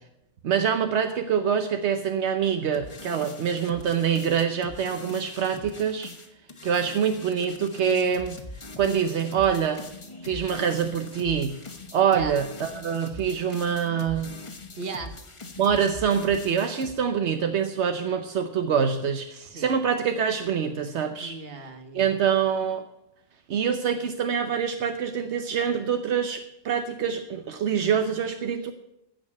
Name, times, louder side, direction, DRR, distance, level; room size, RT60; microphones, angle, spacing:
voice 1, 0.4-6.1 6.6-8.4 8.8-9.8 10.2-11.6 11.9-14.4 15.6-21.4 21.9-22.8 23.5-28.7, right 7 dB, 80° right, 7 dB, 1.1 m, -25 dB
sound 1, 2.7-16.9, left 2 dB, 30° left, 1.1 m, -42 dB
voice 2, 14.8-15.2 19.3-19.8 21.2-22.2, right 4 dB, 60° right, 7 dB, 1.5 m, -37 dB
15.5 x 5.3 x 8.4 m, 0.86 s
omnidirectional pair, 1.1 m